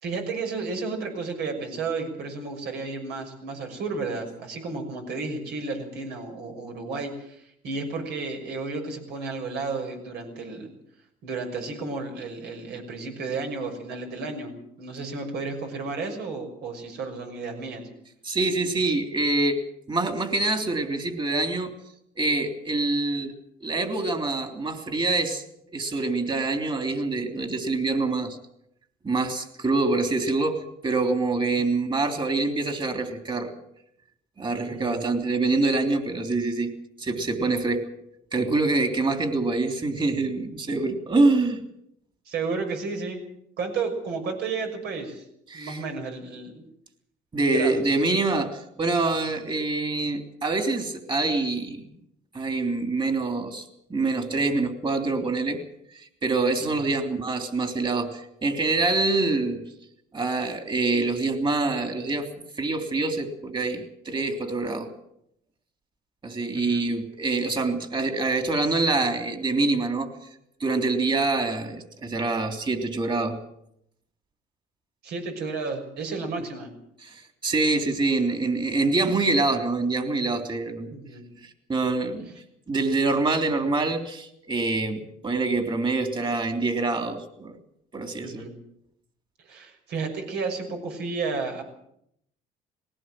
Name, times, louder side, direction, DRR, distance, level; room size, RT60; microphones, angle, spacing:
voice 1, 0.0-10.7 11.2-14.5 14.8-17.8 31.7-31.8 34.7-35.0 42.3-43.2 43.6-45.2 45.5-46.6 47.4-47.8 56.8-56.9 66.5-66.8 75.0-76.7 80.9-81.2 88.2-88.5 89.4-91.6, right 4 dB, 75° right, 3 dB, 6.3 m, -32 dB
voice 2, 18.2-19.6 19.9-21.7 22.1-23.3 23.6-25.4 25.7-28.4 29.0-33.5 34.4-36.7 37.0-37.8 38.3-41.6 45.5-45.8 47.3-51.9 52.3-55.6 55.9-59.6 60.1-62.3 62.6-64.9 66.2-70.1 70.6-73.4 77.0-80.9 81.7-82.3 82.7-87.6 87.9-88.5, right 3 dB, 30° right, 6 dB, 3.4 m, -25 dB
20.0 x 17.5 x 7.6 m, 0.75 s
cardioid pair, 110°, 17 cm